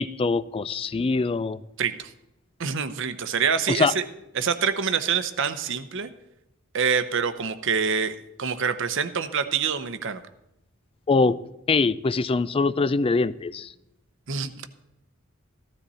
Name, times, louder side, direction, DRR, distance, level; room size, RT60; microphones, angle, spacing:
voice 1, 0.0-1.6 3.7-3.9 11.1-11.4 11.7-13.7, left 4 dB, 25° left, 0.4 m, -23 dB
voice 2, 1.8-2.1 2.6-4.0 4.3-6.1 6.7-10.2 14.3-14.6, right 6 dB, 65° right, 0.8 m, -26 dB
14.5 x 13.0 x 4.2 m
head